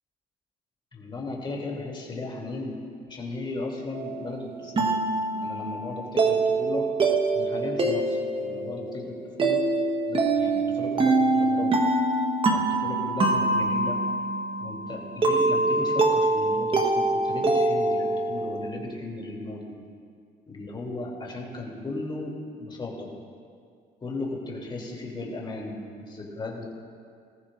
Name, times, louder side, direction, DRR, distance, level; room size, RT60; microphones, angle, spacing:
voice 1, 0.9-2.8 3.1-5.0 5.3-6.9 7.3-9.6 10.1-11.7 12.5-14.0 14.6-19.7 20.5-23.1 24.0-26.6, left 2 dB, 30° left, -2 dB, 3.1 m, -36 dB
sound 1, 3.9-18.7, right 2 dB, 30° right, 1.3 m, -25 dB
20.0 x 14.5 x 2.6 m, 2.2 s
cardioid pair, 110°, 17 cm